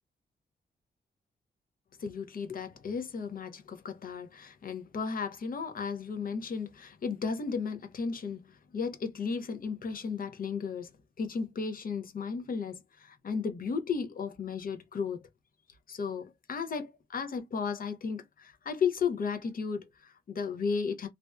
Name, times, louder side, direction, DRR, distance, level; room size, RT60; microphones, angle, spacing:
voice 1, 2.0-8.4 8.7-10.9 11.2-15.2 15.9-21.1, left 5 dB, 55° left, 0.6 m, -34 dB
2.5 x 2.2 x 2.3 m
cardioid pair, 75°, 18 cm